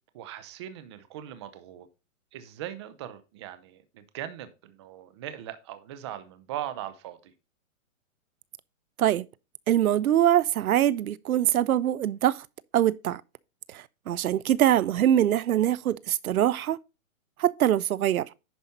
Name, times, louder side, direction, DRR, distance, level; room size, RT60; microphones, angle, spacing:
voice 1, 0.1-1.9 2.3-7.3, right 11 dB, 20° right, 0.6 m, -40 dB
voice 2, 9.7-12.4 12.7-13.2 13.7-16.8 17.4-18.3, right 11 dB, 85° right, 0.7 m, -23 dB
10.5 x 5.1 x 4.1 m
hypercardioid pair, 160°, 41 cm